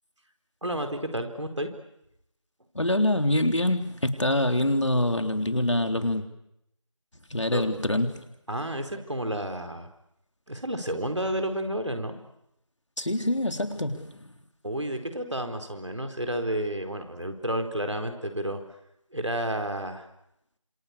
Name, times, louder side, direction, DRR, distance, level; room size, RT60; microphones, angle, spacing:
voice 1, 0.6-1.7 7.5-7.7 8.5-9.9 10.5-12.2 14.6-18.6 19.1-20.1, right 1 dB, 65° right, 5 dB, 4.5 m, -31 dB
voice 2, 2.8-6.3 7.3-8.2 13.0-14.3, left 1 dB, 65° left, 6 dB, 3.5 m, -25 dB
27.0 x 26.0 x 8.5 m, 0.81 s
figure-of-eight pair, 175°, 16 cm